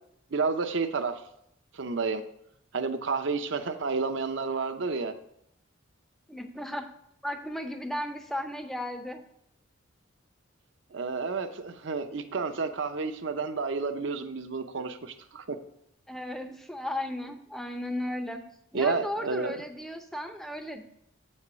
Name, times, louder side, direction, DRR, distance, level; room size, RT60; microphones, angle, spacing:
voice 1, 0.3-1.2 1.7-2.2 2.7-5.1 10.9-15.6 18.7-19.6, right 4 dB, 60° right, 7 dB, 0.6 m, -30 dB
voice 2, 6.3-6.9 7.2-9.2 14.8-14.9 16.1-18.4 18.7-20.8, left 1 dB, ahead, 6 dB, 0.5 m, -35 dB
7.7 x 4.3 x 6.0 m, 0.75 s
head